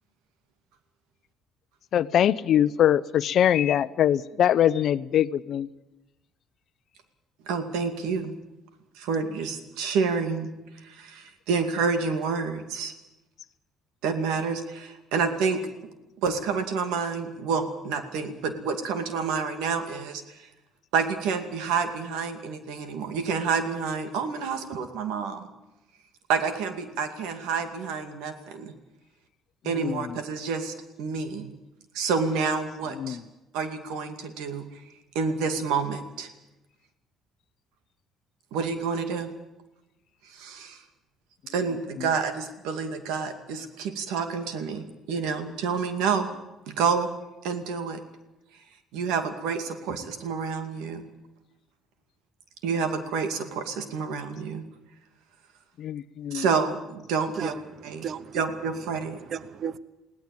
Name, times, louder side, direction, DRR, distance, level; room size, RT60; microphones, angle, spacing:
voice 1, 1.9-5.7 29.8-30.0 33.0-33.2 55.8-56.4, left 10 dB, 60° left, 16 dB, 0.7 m, -22 dB
voice 2, 7.5-8.3 9.0-10.5 10.8-12.9 14.0-15.6 16.2-20.4 20.9-25.5 26.3-28.7 29.6-31.5 31.9-33.2 33.5-34.8 35.1-36.3 38.5-39.3 40.2-40.8 41.5-46.3 46.7-47.1 47.4-48.0 48.9-51.0 52.6-54.6 56.3-57.5 57.8-58.1 58.3-59.2, right 5 dB, 85° right, 8 dB, 2.4 m, -28 dB
voice 3, 57.3-58.5 58.8-59.8, right 7 dB, 55° right, 16 dB, 0.9 m, -36 dB
20.5 x 17.0 x 8.9 m, 0.99 s
cardioid pair, 100°, 0 cm